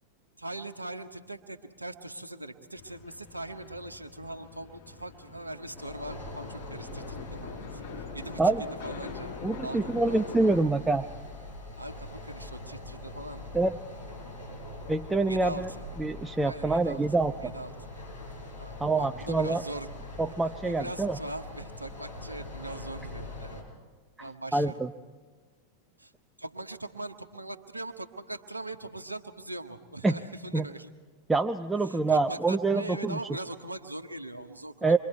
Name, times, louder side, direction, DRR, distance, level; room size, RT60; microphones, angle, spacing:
voice 1, 0.4-7.9 8.1-8.5 8.8-9.3 9.6-10.2 11.8-13.4 14.2-14.4 15.3-15.8 16.4-17.0 17.4-17.7 18.6-19.9 20.6-23.7 24.2-24.7 26.0-26.1 26.4-30.9 31.8-35.0, right 2 dB, 80° right, 6 dB, 1.1 m, -41 dB
sound 1, 2.7-10.6, left 5 dB, 55° left, 5.6 m, -43 dB
sound 2, 5.7-23.6, left 2 dB, 85° left, 6.4 m, -43 dB
voice 2, 9.4-11.1 13.5-13.7 14.9-15.7 16.0-17.3 18.8-19.6 20.2-21.2 24.2-24.9 30.0-30.2 30.5-30.7 31.3-33.2 34.8-35.0, right 3 dB, 10° right, 6 dB, 0.6 m, -26 dB
27.5 x 23.5 x 4.5 m, 1.4 s
figure-of-eight pair, 90°, 0 cm